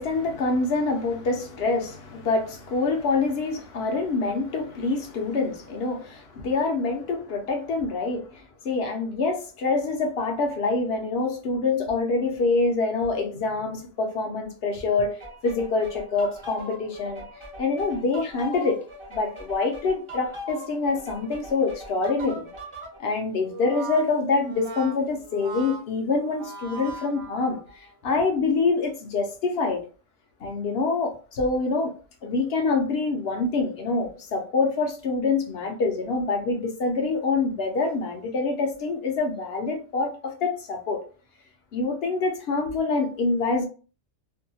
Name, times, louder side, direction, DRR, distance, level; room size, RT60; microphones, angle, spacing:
voice 1, 0.0-15.2 15.4-17.2 17.6-18.8 19.1-22.5 23.0-29.8 30.4-31.9 32.2-41.0 41.7-43.7, left 3 dB, 65° left, 0.8 m, -26 dB
sound 1, 15.2-23.0, equal, 30° right, 0.7 m, -41 dB
Brass instrument, 23.4-27.9, right 4 dB, 65° right, 0.8 m, -40 dB
2.6 x 2.2 x 2.7 m
omnidirectional pair, 1.2 m